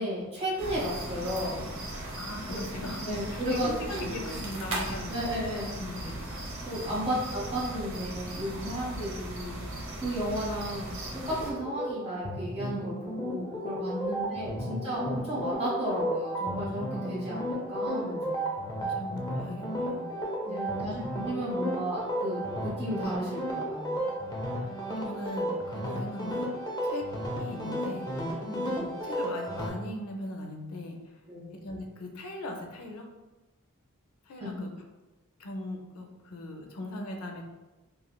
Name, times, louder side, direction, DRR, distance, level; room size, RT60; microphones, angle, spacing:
voice 1, 0.0-1.7 3.0-4.2 5.1-5.7 6.6-9.6 10.0-18.4 20.4-24.1 28.4-28.8 31.3-31.5 34.4-34.6, equal, 30° right, -9 dB, 1.4 m, -34 dB
sound 1, 0.6-11.5, right 1 dB, 60° right, 0.6 m, -38 dB
voice 2, 2.2-5.4 5.8-6.2 6.5-7.3 14.0-15.1 18.8-20.1 20.5-21.0 24.6-26.5 26.8-27.0 27.4-28.4 28.7-31.2 31.5-33.1 34.3-34.7 35.4-37.4, left 1 dB, 85° left, 2 dB, 0.5 m, -40 dB
sound 2, 11.1-29.7, equal, 20° left, 0.5 m, -33 dB
3.0 x 2.6 x 2.2 m, 1.1 s
head